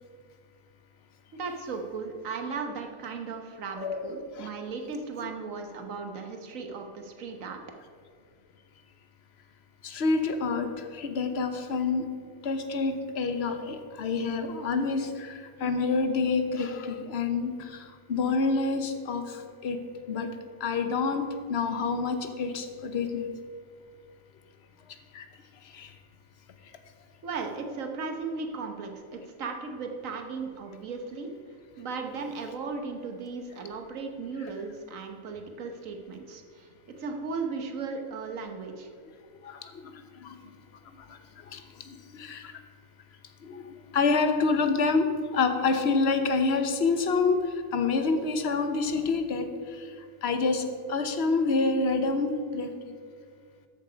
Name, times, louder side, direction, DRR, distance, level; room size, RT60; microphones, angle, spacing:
voice 1, 1.3-7.6 27.2-31.3 31.8-36.7 37.0-38.9, right 4 dB, 80° right, 4 dB, 1.5 m, -36 dB
voice 2, 3.8-4.5 5.2-5.3 9.8-12.1 12.4-23.3 25.1-25.3 25.7-25.9 39.4-40.4 41.1-42.5 43.4-49.9 50.2-52.7, left 4 dB, 55° left, 8 dB, 1.1 m, -28 dB
13.5 x 7.3 x 5.1 m, 2.1 s
omnidirectional pair, 1.4 m